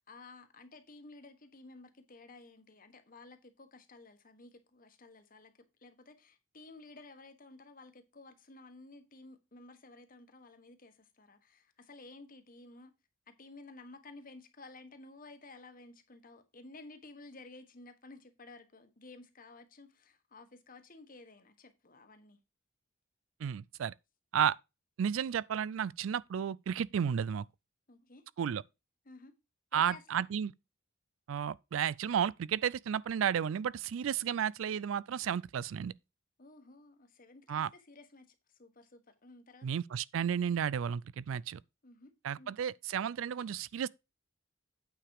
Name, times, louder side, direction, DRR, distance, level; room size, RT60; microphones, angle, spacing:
voice 1, 0.0-5.5 5.8-12.9 13.3-22.4 27.9-28.3 29.0-29.3 29.7-30.2 36.4-39.8 41.8-42.5, left 3 dB, 45° left, 1.4 m, -54 dB
voice 2, 23.4-23.9 24.3-24.6 25.0-27.4 28.4-28.6 29.7-30.5 31.3-35.9 37.5-37.7 39.6-41.6 42.2-43.9, right 8 dB, 80° right, 0.4 m, -32 dB
8.9 x 4.9 x 4.8 m
head